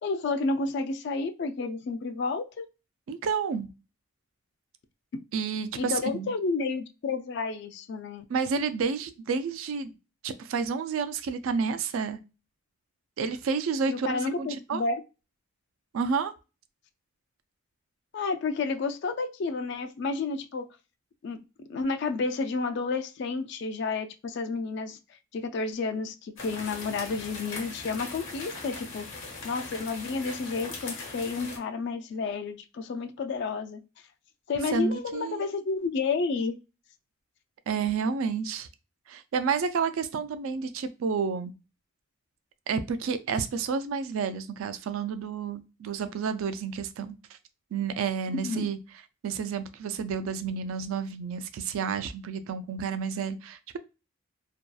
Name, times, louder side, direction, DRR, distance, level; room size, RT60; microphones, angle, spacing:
voice 1, 0.0-2.7 5.1-5.2 5.8-8.2 13.9-15.0 18.1-20.7 21.2-21.4 21.7-25.0 25.3-29.1 29.4-33.8 34.5-36.6 48.4-48.7, left 4 dB, 55° left, 8 dB, 0.3 m, -31 dB
voice 2, 3.1-3.7 5.3-6.3 8.3-9.9 10.2-12.2 13.2-14.8 15.9-16.3 34.7-35.5 37.7-38.7 39.1-41.5 42.7-47.2 47.7-48.8 49.2-53.8, right 5 dB, 75° right, 11 dB, 0.3 m, -30 dB
sound 1, 26.4-31.6, left 3 dB, 75° left, 0.9 m, -40 dB
2.7 x 2.3 x 2.2 m, 0.29 s
head